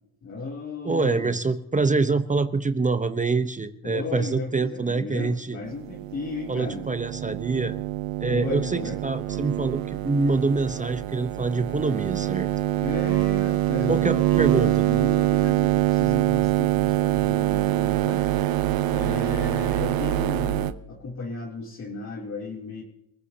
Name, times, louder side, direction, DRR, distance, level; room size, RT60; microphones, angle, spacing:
voice 1, 0.2-1.3 3.8-6.8 8.3-9.0 12.8-18.3 18.9-22.8, left 3 dB, 35° left, -3 dB, 3.3 m, -34 dB
voice 2, 0.8-5.6 6.5-7.7 8.2-12.5 13.9-14.8, right 3 dB, 15° right, 10 dB, 0.9 m, -25 dB
sound 1, 5.7-20.7, right 15 dB, 50° right, 1.0 m, -25 dB
30.0 x 15.0 x 2.9 m, 0.82 s
supercardioid pair, 80°, 45 cm